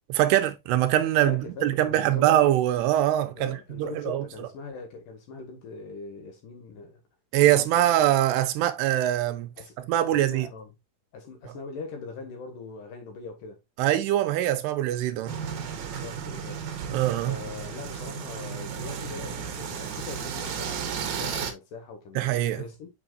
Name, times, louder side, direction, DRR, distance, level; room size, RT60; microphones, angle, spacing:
voice 1, 0.1-4.5 7.3-9.5 9.9-10.5 13.8-15.4 16.9-17.4 22.2-22.6, right 13 dB, 85° right, 2.9 m, -23 dB
voice 2, 1.2-2.3 3.4-7.0 7.4-7.9 9.6-9.8 10.1-10.7 11.1-13.6 15.9-16.6 17.3-22.9, left 4 dB, 65° left, 2.7 m, -41 dB
sound 1, 15.3-21.5, right 7 dB, 65° right, 2.3 m, -34 dB
7.0 x 5.9 x 2.5 m
omnidirectional pair, 4.7 m